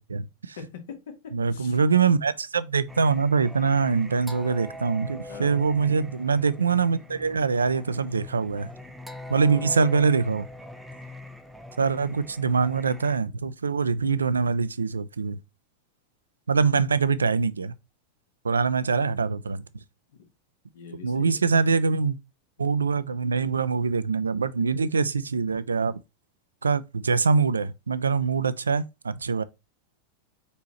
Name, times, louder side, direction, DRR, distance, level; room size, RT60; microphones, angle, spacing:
voice 1, 0.0-0.6 1.3-8.7 9.3-10.5 11.8-15.4 16.5-17.7 18.4-19.6 21.0-22.2 22.6-26.0 26.6-29.4, right 5 dB, 75° right, 0.3 m, -24 dB
voice 2, 0.6-1.8 5.3-5.6 8.8-8.9 9.4-9.7 20.7-21.4 28.3-28.4, left 6 dB, 60° left, 1.2 m, -43 dB
Singing, 2.9-13.2, left 1 dB, 5° right, 0.5 m, -42 dB
4.4 x 4.1 x 2.9 m
figure-of-eight pair, 90°, 0 cm